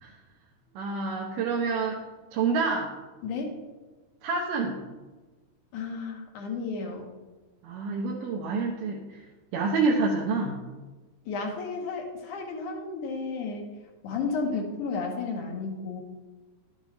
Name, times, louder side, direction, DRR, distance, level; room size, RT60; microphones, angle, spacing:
voice 1, 0.8-2.0 2.3-2.9 4.2-4.8 7.6-9.2 9.5-10.6, right 4 dB, 80° right, -2 dB, 2.4 m, -27 dB
voice 2, 3.2-3.6 5.7-7.1 11.3-13.8 14.0-16.0, left 4 dB, 70° left, 1 dB, 2.4 m, -32 dB
11.5 x 7.3 x 3.1 m, 1.2 s
omnidirectional pair, 3.9 m